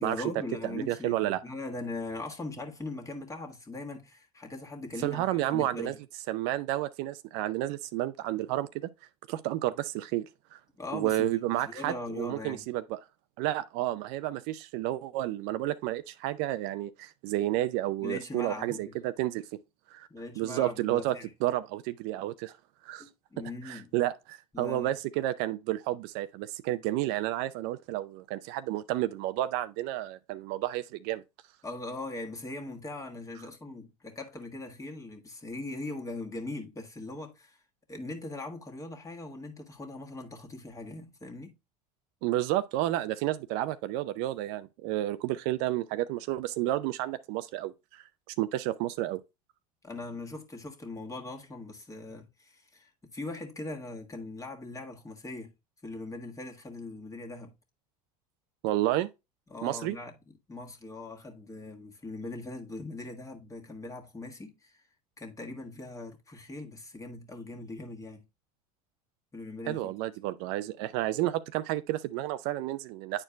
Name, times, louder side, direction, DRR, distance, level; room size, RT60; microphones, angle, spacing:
voice 1, 0.0-6.0 10.8-12.7 18.0-18.9 20.1-21.3 23.0-23.9 24.5-24.9 31.6-37.6 37.9-41.5 49.8-55.5 55.8-57.5 59.5-60.1 60.5-64.8 65.2-68.3 69.3-69.9, left 2 dB, 15° left, 1.5 m, -40 dB
voice 2, 0.7-1.4 5.0-5.9 6.3-8.9 9.3-10.3 10.5-10.6 10.9-13.0 13.4-19.4 19.9-20.1 20.4-21.1 21.4-22.5 22.8-23.1 23.6-31.2 42.2-49.2 58.6-59.1 59.6-60.0 69.7-73.2, right 15 dB, 65° right, 0.5 m, -31 dB
9.7 x 4.5 x 2.2 m
hypercardioid pair, 95°, 19 cm